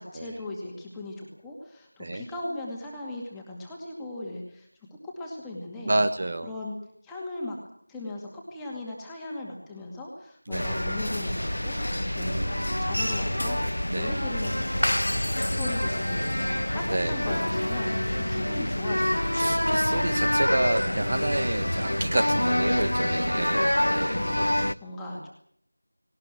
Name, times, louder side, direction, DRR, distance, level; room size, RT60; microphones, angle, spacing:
voice 1, 0.0-4.7 5.0-5.9 6.4-6.8 7.0-7.6 7.9-13.6 13.9-15.0 15.4-19.5 23.3-25.3, left 2 dB, 5° left, -3 dB, 2.3 m, -38 dB
voice 2, 5.8-6.5 10.5-10.7 12.2-13.1 13.9-14.1 16.9-17.2 19.3-24.2, right 2 dB, 35° right, 8 dB, 1.2 m, -29 dB
sound 1, 10.5-24.7, left 1 dB, 85° left, 1.1 m, -26 dB
19.5 x 18.5 x 9.1 m, 0.63 s
figure-of-eight pair, 175°, 0 cm